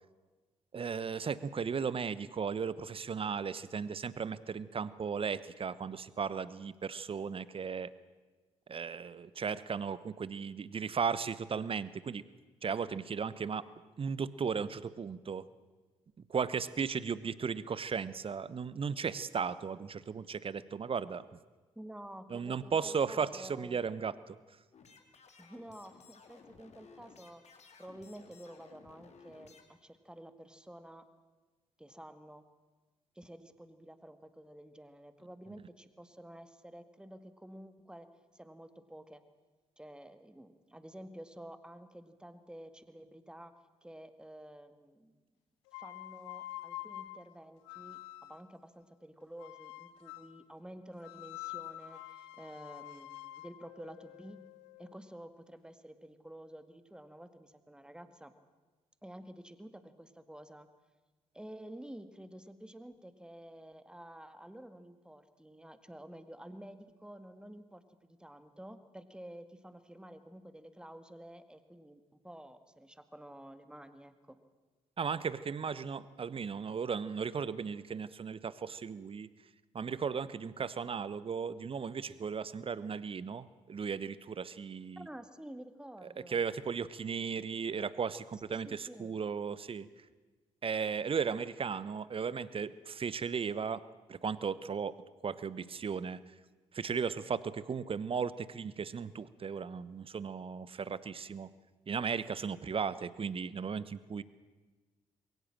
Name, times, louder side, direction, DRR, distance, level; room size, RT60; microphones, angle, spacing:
voice 1, 0.7-7.9 8.7-12.2 12.6-13.6 14.0-15.5 16.3-21.2 22.3-24.4 75.0-79.3 79.7-85.1 86.3-89.9 90.6-93.8 94.1-94.9 95.2-96.2 96.7-101.5 101.9-104.2, right 6 dB, 35° right, 17 dB, 1.0 m, -36 dB
voice 2, 21.8-23.8 25.4-31.1 31.8-32.4 33.2-38.1 38.3-39.2 39.8-43.5 43.8-45.1 45.8-54.4 54.8-58.3 59.0-60.7 61.3-74.4 85.0-86.4 88.3-89.1, right 1 dB, 5° right, 10 dB, 1.9 m, -50 dB
sound 1, 24.7-29.6, left 5 dB, 45° left, 2.7 m, -58 dB
sound 2, 45.7-48.5 49.4-50.4 51.0-55.0, left 15 dB, 75° left, 0.7 m, -47 dB
22.0 x 17.5 x 7.6 m, 1.3 s
figure-of-eight pair, 40°, 15 cm